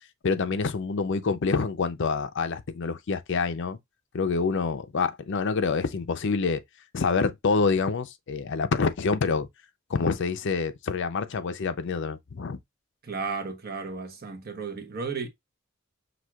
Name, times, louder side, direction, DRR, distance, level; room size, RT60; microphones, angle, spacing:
voice 1, 0.2-3.8 4.1-6.6 6.9-9.5 9.9-12.6, left 4 dB, 60° left, 0.5 m, -27 dB
voice 2, 13.0-15.3, right 4 dB, 50° right, 1.0 m, -34 dB
6.0 x 2.7 x 2.3 m
head